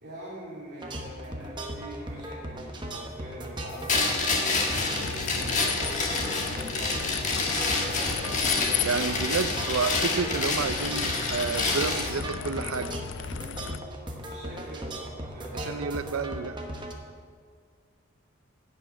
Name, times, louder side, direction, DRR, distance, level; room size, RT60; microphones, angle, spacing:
voice 1, 0.0-7.1 7.4-9.0 9.2-9.4 14.1-15.9, right 1 dB, 50° right, -9 dB, 2.6 m, -43 dB
sound 1, 0.8-16.9, right 1 dB, 20° right, 1.0 m, -37 dB
sound 2, 3.9-12.1, left 3 dB, 35° left, 1.4 m, -28 dB
sound 3, 4.7-13.8, left 9 dB, 60° left, 0.4 m, -36 dB
voice 2, 8.8-12.9 15.7-16.6, right 5 dB, 85° right, 11 dB, 0.5 m, -30 dB
11.5 x 5.8 x 8.3 m, 2.1 s
head